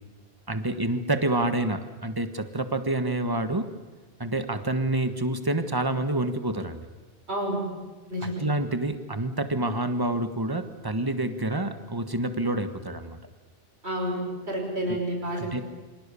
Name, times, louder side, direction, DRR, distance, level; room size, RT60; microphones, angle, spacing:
voice 1, 0.5-3.7 4.2-6.9 8.4-13.2 14.9-15.0 15.3-15.6, right 2 dB, 20° right, 9 dB, 1.5 m, -28 dB
voice 2, 7.3-7.6 8.1-8.4 13.8-15.6, right 1 dB, 80° right, 1 dB, 5.9 m, -29 dB
28.0 x 25.0 x 7.1 m, 1.3 s
omnidirectional pair, 1.1 m